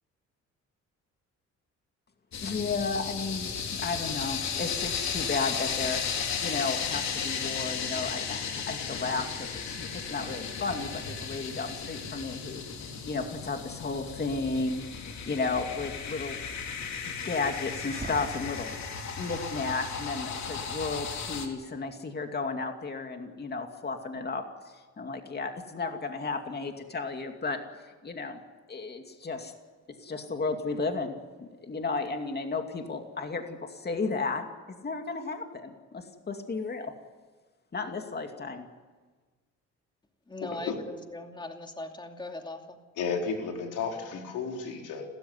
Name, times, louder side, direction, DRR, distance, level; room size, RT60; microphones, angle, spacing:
sound 1, 2.3-21.5, left 6 dB, 65° left, 3.5 m, -35 dB
voice 1, 2.4-16.4 17.0-18.8 19.2-27.6 28.0-28.4 28.7-29.5 30.0-36.9 37.7-38.7, left 4 dB, 35° left, 5 dB, 2.5 m, -34 dB
Breathing, 17.9-19.6, right 3 dB, 30° right, 6.0 m, -43 dB
voice 2, 40.3-42.8, left 2 dB, 15° left, 4 dB, 2.6 m, -40 dB
voice 3, 43.0-45.0, left 5 dB, 85° left, 2 dB, 4.2 m, -33 dB
30.0 x 14.0 x 9.7 m, 1.4 s
cardioid pair, 90°, 30 cm